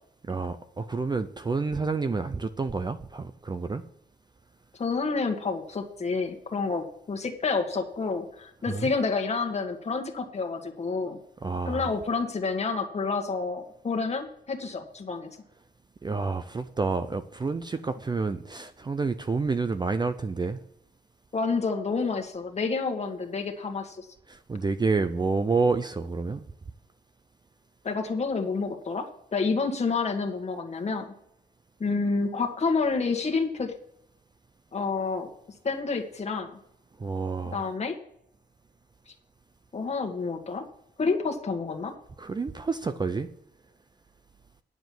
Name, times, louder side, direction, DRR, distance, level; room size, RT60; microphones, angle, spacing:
voice 1, 0.3-3.8 8.7-8.9 11.4-11.9 16.0-20.6 24.3-26.4 37.0-37.7 42.2-43.3, right 4 dB, 25° right, 0.5 m, -29 dB
voice 2, 4.7-11.2 11.6-15.3 21.3-24.1 27.8-31.1 31.8-33.7 34.7-35.3 35.6-36.6 37.5-37.9 39.7-40.6 41.0-41.9, left 4 dB, 40° left, 1.6 m, -29 dB
10.0 x 7.2 x 6.1 m
wide cardioid pair, 170°, 18 cm